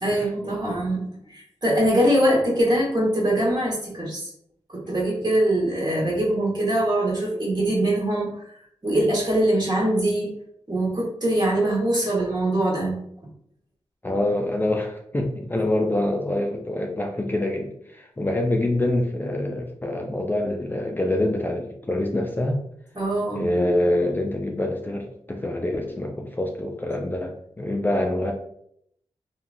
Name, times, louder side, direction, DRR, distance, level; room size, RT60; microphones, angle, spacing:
voice 1, 0.0-4.3 4.7-8.3 8.8-10.4 10.7-13.0 22.9-23.5, right 1 dB, 40° right, -3 dB, 1.4 m, -23 dB
voice 2, 14.0-22.6 23.3-28.3, left 1 dB, 20° left, 1 dB, 0.4 m, -25 dB
3.1 x 2.3 x 2.5 m, 0.71 s
cardioid pair, 45°, 11 cm